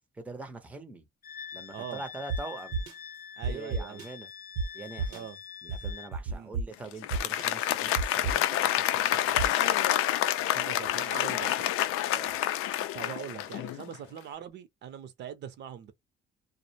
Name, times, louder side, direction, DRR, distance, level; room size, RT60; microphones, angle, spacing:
voice 1, 0.1-1.0 1.5-2.8 3.4-4.3 4.7-5.3 5.6-9.6 12.1-12.4, right 2 dB, 5° right, 0.5 m, -43 dB
Wind instrument woodwind instrument, 1.2-6.1, left 8 dB, 40° left, 0.6 m, -45 dB
voice 2, 1.7-2.0 3.4-4.1 5.1-5.4 6.3-6.6 10.5-11.7 12.9-15.9, right 9 dB, 55° right, 0.5 m, -42 dB
sound 1, 2.3-2.4 2.7-2.9 3.4-4.1 4.6-4.7 5.0-5.2 5.7-6.6 7.1-7.5 8.0-8.6 9.4-9.7, right 4 dB, 80° right, 0.8 m, -31 dB
Applause, 6.9-13.9, left 13 dB, 90° left, 0.4 m, -28 dB
2.4 x 2.0 x 2.6 m
cardioid pair, 140°, 21 cm